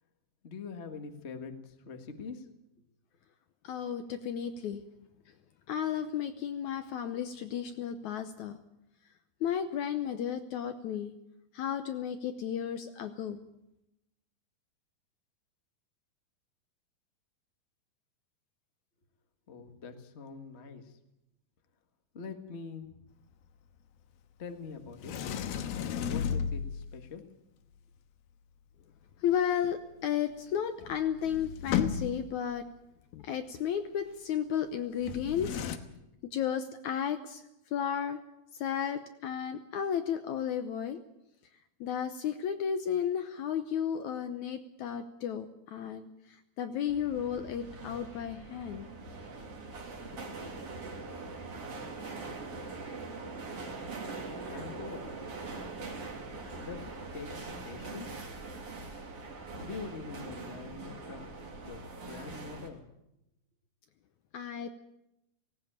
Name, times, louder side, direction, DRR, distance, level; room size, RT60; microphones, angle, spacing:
voice 1, 0.4-2.5 19.5-21.0 22.1-23.0 24.4-25.2 26.0-27.2 54.3-55.1 56.6-56.9 57.1-58.1 59.6-61.3 61.6-62.9, left 5 dB, 45° left, 6 dB, 0.8 m, -44 dB
voice 2, 3.6-4.8 5.7-8.6 9.4-11.1 11.5-13.4 29.2-32.7 33.1-35.7 36.3-37.4 37.7-38.2 38.5-41.0 41.8-48.9 64.3-64.7, left 8 dB, 70° left, 9 dB, 1.9 m, -33 dB
Sliding door, 25.0-27.0 30.5-30.6 30.8-32.4 35.0-35.8, left 8 dB, 90° left, 3.0 m, -33 dB
sound 1, 46.9-62.7, right 3 dB, 40° right, 3.5 m, -42 dB
18.0 x 18.0 x 8.8 m, 0.88 s
omnidirectional pair, 4.2 m